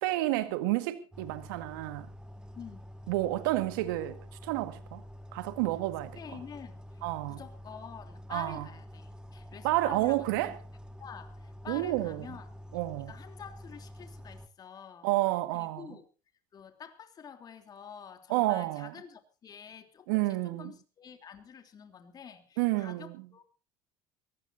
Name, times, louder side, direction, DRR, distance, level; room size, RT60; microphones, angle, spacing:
voice 1, 0.0-2.1 3.1-5.0 5.3-6.2 7.0-7.4 8.3-8.6 9.6-10.5 11.7-12.2 12.7-13.1 15.0-15.9 18.3-18.9 20.1-20.7 22.6-23.1, right 17 dB, 85° right, 1.8 m, -30 dB
sound 1, 1.1-14.5, equal, 5° right, 1.8 m, -48 dB
voice 2, 2.5-2.9 6.1-6.8 7.3-10.6 11.0-12.5 13.0-15.1 15.5-16.0 16.5-23.4, left 7 dB, 40° left, 3.3 m, -48 dB
22.5 x 17.0 x 2.7 m
supercardioid pair, 95°, 11 cm